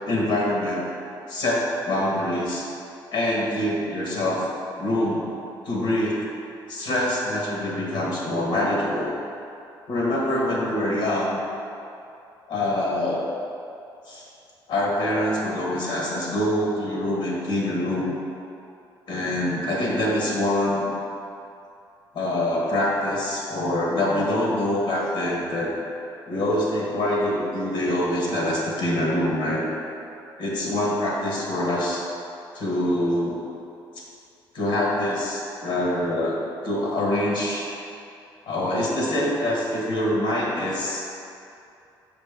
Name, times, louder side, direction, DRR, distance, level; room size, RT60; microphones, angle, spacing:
voice 1, 0.1-0.9 1.3-2.6 3.1-4.5 4.8-5.3 5.6-6.2 6.7-9.1 9.9-11.4 12.5-13.2 14.1-14.2 14.7-18.2 19.1-20.9 22.1-25.7 26.3-29.7 30.4-32.0 32.5-33.4 34.5-36.3 36.6-37.7 38.5-41.0, left 1 dB, 70° left, -4 dB, 1.2 m, -25 dB
5.9 x 5.2 x 3.5 m, 2.7 s
cardioid pair, 135°, 9 cm